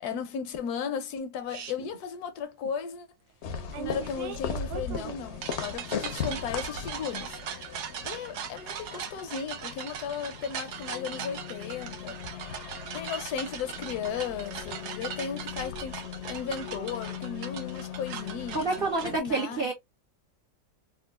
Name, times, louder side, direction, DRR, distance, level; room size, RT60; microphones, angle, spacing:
voice 1, 0.0-3.1 3.8-7.4 8.0-12.2 12.9-19.7, left 7 dB, 80° left, 1.1 m, -35 dB
sound 1, 1.5-1.7 3.7-19.2, right 9 dB, 85° right, 1.2 m, -40 dB
sound 2, 3.4-19.2, left 7 dB, 60° left, 0.7 m, -39 dB
voice 2, 18.5-19.7, right 3 dB, 55° right, 0.6 m, -28 dB
3.7 x 2.3 x 2.3 m
omnidirectional pair, 1.7 m